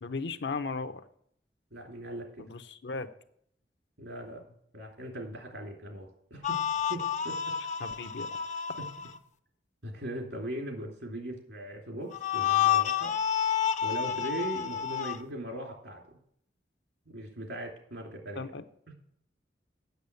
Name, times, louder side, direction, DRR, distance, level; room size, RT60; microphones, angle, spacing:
voice 1, 0.0-1.0 2.4-3.1 7.8-8.3 18.4-18.6, left 4 dB, 80° left, 9 dB, 0.8 m, -36 dB
voice 2, 1.7-2.5 4.0-4.5 4.7-6.6 6.9-7.4 9.8-13.2 13.8-16.2 17.1-18.5, right 1 dB, 80° right, 1 dB, 2.8 m, -39 dB
sound 1, 6.4-9.2 12.1-15.2, left 9 dB, 45° left, 0.5 m, -29 dB
8.2 x 7.0 x 6.8 m, 0.69 s
head